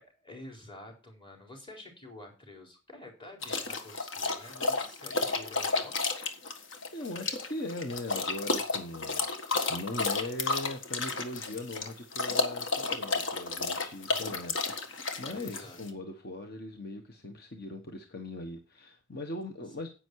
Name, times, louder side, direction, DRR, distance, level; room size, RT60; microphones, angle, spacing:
voice 1, 0.0-6.5 14.1-14.4 15.3-15.8, left 1 dB, 25° left, 4.2 m, -49 dB
sound 1, 3.4-15.9, left 3 dB, 70° left, 1.6 m, -32 dB
voice 2, 6.9-19.9, left 2 dB, 50° left, 1.2 m, -40 dB
10.5 x 8.8 x 4.7 m
head